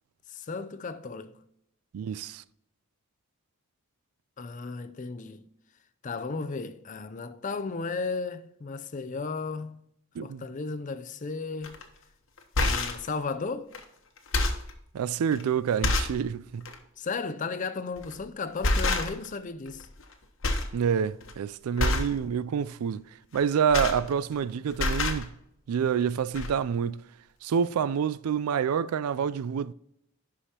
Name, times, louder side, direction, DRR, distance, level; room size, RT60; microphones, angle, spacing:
voice 1, 0.3-1.4 4.4-5.4 6.0-9.8 10.2-11.8 12.6-13.7 17.0-19.9, left 4 dB, 35° left, 0.4 m, -34 dB
voice 2, 1.9-2.4 10.2-10.4 14.9-16.7 20.7-23.0 23.3-25.3 25.7-27.0 27.4-29.7, right 7 dB, 85° right, 0.3 m, -27 dB
sound 1, 11.6-11.8 12.4-13.1 13.7-13.8 14.2-14.7 15.3-15.4 15.8-16.2 16.6-16.8 18.0-18.2 18.6-19.4 19.7-20.1 20.4-20.7 21.1-21.3 21.8-22.2 23.3-24.4 24.7-25.2 26.0-26.1 26.3-26.5, left 2 dB, 60° left, 1.0 m, -27 dB
11.0 x 4.9 x 2.8 m
head